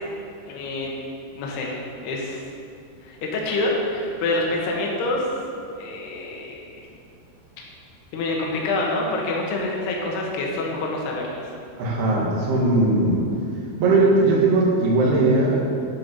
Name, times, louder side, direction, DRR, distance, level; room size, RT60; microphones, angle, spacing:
voice 1, 0.5-0.9 1.4-2.4 3.0-5.3 5.8-6.9 8.1-11.5, left 2 dB, 70° left, -2 dB, 3.5 m, -26 dB
voice 2, 11.8-13.2 13.8-15.7, right 2 dB, 70° right, -3 dB, 3.8 m, -19 dB
11.0 x 9.5 x 5.5 m, 2.4 s
omnidirectional pair, 5.0 m